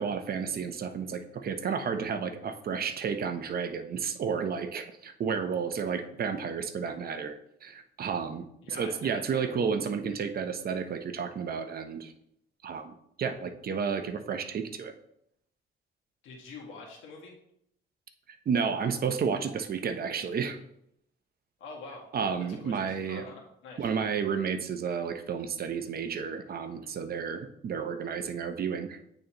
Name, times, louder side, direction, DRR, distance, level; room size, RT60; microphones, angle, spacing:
voice 1, 0.0-12.1 12.6-14.9 18.5-20.6 22.1-23.2 23.8-29.0, right 6 dB, 50° right, 8 dB, 0.7 m, -32 dB
voice 2, 8.6-9.5 16.2-17.3 21.6-22.1 22.5-23.9, left 3 dB, 90° left, -1 dB, 1.6 m, -46 dB
8.6 x 3.9 x 2.9 m, 0.74 s
cardioid pair, 90°, 20 cm